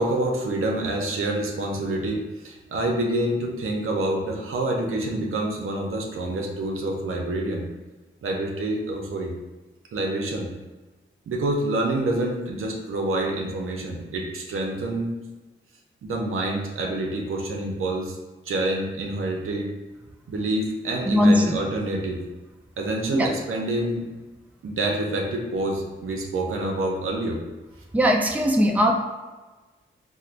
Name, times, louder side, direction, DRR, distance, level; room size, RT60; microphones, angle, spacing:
voice 1, 0.0-7.6 8.2-9.3 9.9-10.5 11.3-15.1 16.0-18.2 18.5-19.7 20.3-22.2 22.8-24.0 24.6-27.4, right 1 dB, 75° right, 0 dB, 0.6 m, -27 dB
voice 2, 27.9-28.9, equal, 5° right, 0 dB, 0.5 m, -19 dB
4.3 x 2.1 x 2.5 m, 1.2 s
cardioid pair, 55°, 21 cm